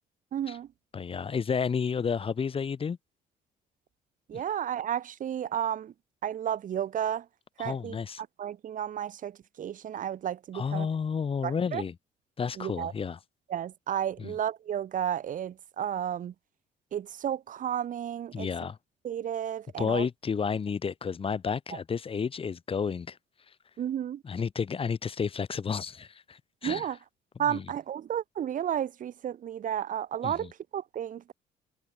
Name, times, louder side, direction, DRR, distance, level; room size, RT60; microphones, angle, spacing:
voice 1, 0.3-0.7 4.3-5.9 6.2-7.2 7.6-8.0 8.4-10.9 11.4-11.8 12.6-12.9 13.5-16.3 16.9-18.5 19.0-20.1 21.7-21.8 23.8-24.2 26.6-27.0 27.4-31.3, right 10 dB, 50° right, 1.7 m, -32 dB
voice 2, 0.9-3.0 4.3-4.4 7.6-8.2 10.5-11.9 12.4-13.2 14.2-14.3 18.3-18.8 19.8-23.2 24.2-26.9 27.5-27.6 30.2-30.5, left 6 dB, 35° left, 2.3 m, -31 dB
cardioid pair, 110°, 17 cm